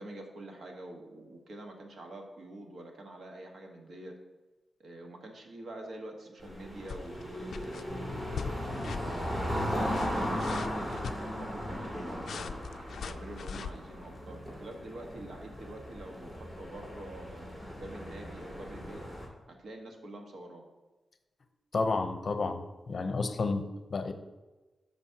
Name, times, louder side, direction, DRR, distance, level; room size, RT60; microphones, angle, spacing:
voice 1, 0.0-4.1 4.8-7.9 8.8-12.6 13.0-19.0 19.5-20.6, right 1 dB, 75° right, 2 dB, 1.4 m, -46 dB
sound 1, 6.4-19.3, equal, 15° right, 2.5 m, -37 dB
sound 2, 6.9-7.2 7.5-7.8 8.3-8.6 8.8-9.1 9.8-11.2 12.2-13.7, left 6 dB, 85° left, 0.3 m, -40 dB
voice 2, 21.7-24.1, left 3 dB, 50° left, 8 dB, 0.7 m, -31 dB
13.0 x 5.3 x 2.8 m, 1.2 s
wide cardioid pair, 130°, 0 cm